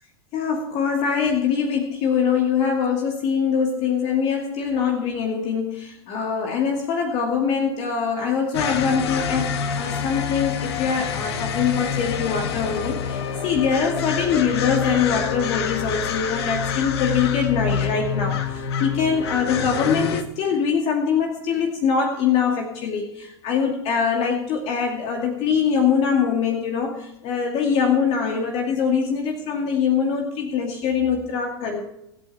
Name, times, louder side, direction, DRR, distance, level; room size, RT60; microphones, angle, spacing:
voice 1, 0.3-31.8, left 6 dB, 45° left, 2 dB, 2.4 m, -23 dB
sound 1, 8.5-20.2, left 7 dB, 65° left, 1.8 m, -27 dB
25.5 x 8.6 x 4.3 m, 0.85 s
hypercardioid pair, 90°, 14 cm